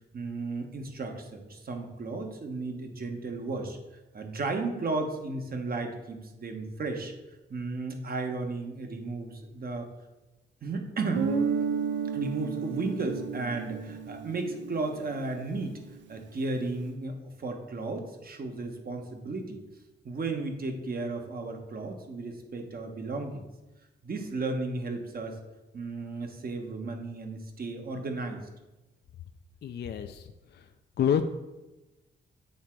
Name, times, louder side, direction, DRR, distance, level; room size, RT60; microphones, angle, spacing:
voice 1, 0.1-3.8 4.1-7.1 7.5-9.9 10.6-11.3 12.1-15.8 16.1-19.6 20.0-23.5 24.0-25.4 25.7-28.5, right 3 dB, 50° right, 4 dB, 1.2 m, -34 dB
Guitar, 11.2-15.7, right 6 dB, 70° right, 0.6 m, -32 dB
voice 2, 29.6-30.3 30.5-30.6 31.0-31.3, left 8 dB, 55° left, 7 dB, 0.4 m, -27 dB
8.2 x 3.7 x 4.5 m, 1.1 s
cardioid pair, 70°, 20 cm